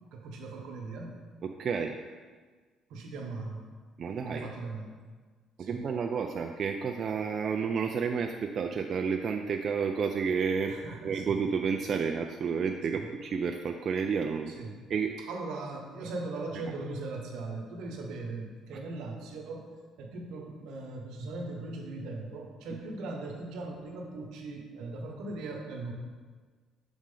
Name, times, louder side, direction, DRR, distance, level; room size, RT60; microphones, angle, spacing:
voice 1, 0.1-1.1 2.9-3.7 4.2-4.9 5.6-5.8 10.7-11.4 12.9-13.1 14.5-14.8 15.3-19.7 20.0-25.9, right 3 dB, 80° right, 1 dB, 1.0 m, -39 dB
voice 2, 1.4-2.0 4.0-4.5 5.6-10.7 11.0-14.5 14.9-15.1, right 6 dB, 50° right, 4 dB, 0.3 m, -30 dB
6.1 x 4.2 x 3.8 m, 1.5 s
cardioid pair, 100°, 0 cm